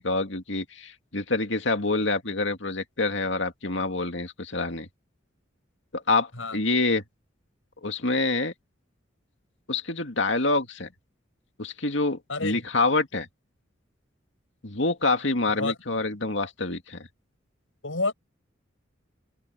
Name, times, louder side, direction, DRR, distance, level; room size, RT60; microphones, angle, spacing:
voice 1, 0.0-4.9 5.9-7.0 7.8-8.5 9.7-10.9 11.6-13.3 14.6-17.1, left 3 dB, 65° left, 2.5 m, -26 dB
voice 2, 12.3-12.6 15.5-16.1 17.8-18.1, left 3 dB, 85° left, 6.7 m, -30 dB
open air
head